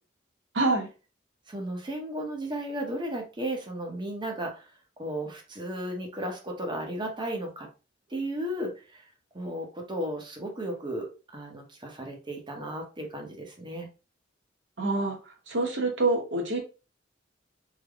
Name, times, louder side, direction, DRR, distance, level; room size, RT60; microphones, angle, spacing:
voice 1, 0.5-0.9 14.8-15.2 15.5-16.6, right 2 dB, 70° right, 2 dB, 1.0 m, -26 dB
voice 2, 1.5-4.7 5.0-7.7 8.1-9.0 9.3-13.9, right 1 dB, 25° right, 2 dB, 0.8 m, -34 dB
3.4 x 2.1 x 3.5 m, 0.32 s
head